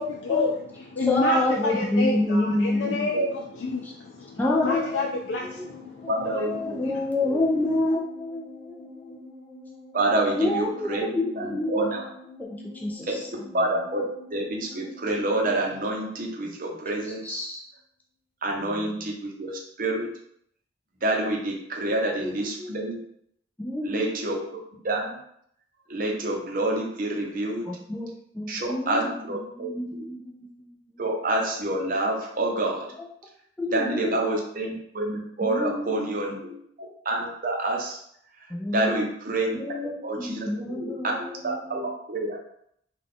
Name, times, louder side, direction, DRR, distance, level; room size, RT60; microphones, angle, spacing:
voice 1, 0.0-3.3 3.6-6.9, left 3 dB, 80° left, 0 dB, 0.4 m, -29 dB
voice 2, 1.0-3.1 3.8-3.9 4.3-5.1 5.4-5.7 6.0-9.2 10.4-12.0 12.4-13.5 16.4-16.6 17.0-17.6 18.6-19.1 22.0-22.8 23.6-24.4 27.7-30.5 30.9-31.0 33.0-33.1 33.6-34.4 35.4-36.6 38.5-39.1 39.5-41.9, left 1 dB, 10° left, -3 dB, 0.4 m, -29 dB
sound 1, 4.5-17.0 17.2-17.3, left 2 dB, 5° right, 1.0 m, -46 dB
voice 3, 6.1-6.9 7.3-7.4 9.9-12.0 13.5-17.4 18.4-20.1 21.0-23.0 23.8-24.4 24.8-25.1 25.9-27.7 28.5-29.0 29.3-30.0 31.0-32.9 33.7-36.3 37.0-38.0 38.7-39.6 40.0-40.9 41.2-41.8 42.1-42.4, right 2 dB, 50° right, 0 dB, 0.7 m, -28 dB
3.7 x 2.4 x 3.7 m, 0.70 s
head